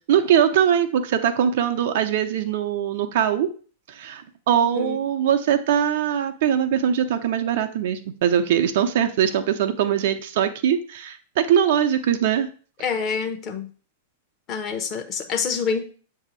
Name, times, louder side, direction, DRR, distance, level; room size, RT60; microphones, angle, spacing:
voice 1, 0.1-3.5 3.9-12.5, right 9 dB, 55° right, 8 dB, 0.6 m, -21 dB
voice 2, 4.6-5.0 12.8-13.7 14.5-15.9, left 6 dB, 35° left, 6 dB, 0.9 m, -27 dB
7.2 x 2.8 x 4.9 m, 0.40 s
figure-of-eight pair, 95°, 0 cm